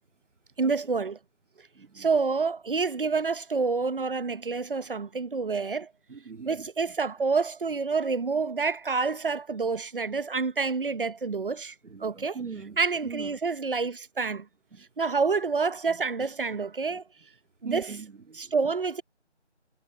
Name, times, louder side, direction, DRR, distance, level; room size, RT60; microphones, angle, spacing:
voice 1, 0.6-1.2 1.9-5.9 6.5-11.7 12.0-12.4 12.8-14.5 15.0-17.0 17.6-17.9 18.4-19.0, right 4 dB, 50° right, 0.9 m, -28 dB
voice 2, 1.8-2.1 6.1-6.7 11.8-13.4 14.7-14.9 15.9-16.0 16.9-17.0 17.6-18.5, right 5 dB, 85° right, 2.2 m, -41 dB
figure-of-eight pair, 170°, 35 cm